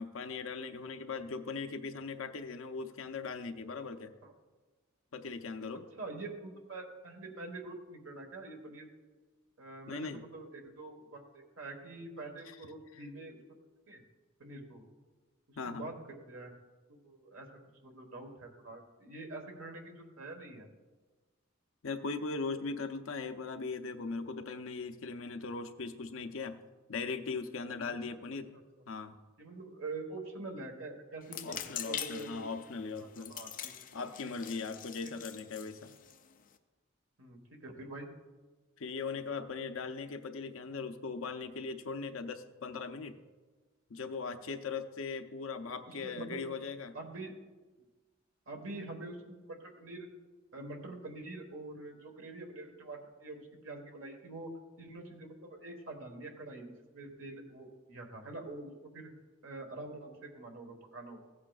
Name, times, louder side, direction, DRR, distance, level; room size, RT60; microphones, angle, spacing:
voice 1, 0.0-4.1 5.1-5.9 9.9-10.2 12.5-12.6 15.6-15.9 21.8-26.6 26.9-28.5 28.9-29.2 31.4-33.4 33.9-35.9 38.8-43.2 43.9-47.0, left 4 dB, 90° left, 7 dB, 0.6 m, -39 dB
voice 2, 6.0-8.9 9.6-13.4 13.9-14.0 14.4-14.8 15.5-16.5 16.9-20.7 28.5-28.6 29.4-31.6 31.8-32.5 33.0-33.7 34.5-34.6 35.0-35.1 37.2-38.1 45.9-46.4 46.9-47.3 48.5-50.1 50.5-54.5 54.8-59.1 59.4-61.2, right 2 dB, 85° right, 2 dB, 1.4 m, -45 dB
sound 1, 31.2-36.6, left 9 dB, 45° left, 0.5 m, -44 dB
16.0 x 8.5 x 2.4 m, 1.3 s
head